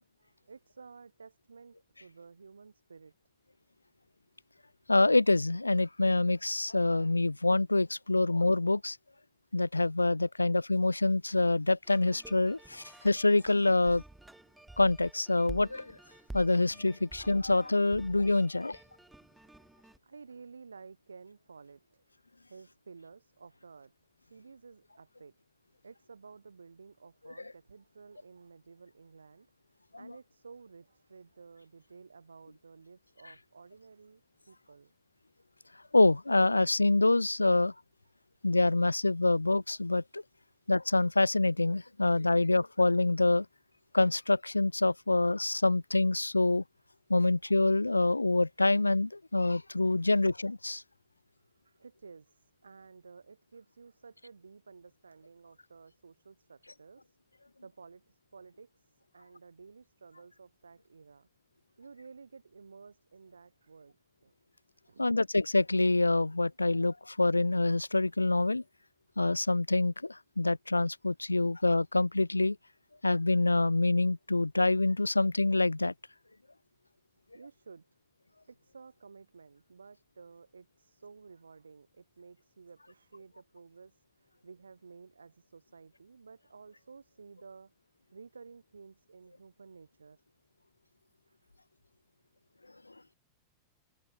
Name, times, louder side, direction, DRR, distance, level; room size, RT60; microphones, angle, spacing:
voice 1, 0.0-3.1 8.1-8.2 20.0-22.1 22.5-23.9 24.2-25.4 25.8-29.5 30.0-34.9 49.9-50.2 51.6-57.2 57.6-61.3 61.7-64.0 64.2-64.3 64.9-65.2 71.4-71.5 77.3-77.9 78.5-87.7 88.1-90.2 91.3-91.5, right 5 dB, 75° right, 7.0 m, -53 dB
voice 2, 4.9-9.0 9.5-14.0 14.8-16.0 16.3-18.8 30.0-30.1 35.9-37.7 38.4-40.2 40.7-43.5 43.9-46.6 47.1-50.8 65.0-68.6 69.2-72.6 73.0-75.9, left 2 dB, 85° left, 0.4 m, -26 dB
sound 1, 11.8-20.0, right 2 dB, 5° right, 3.5 m, -51 dB
figure-of-eight pair, 90°, 0 cm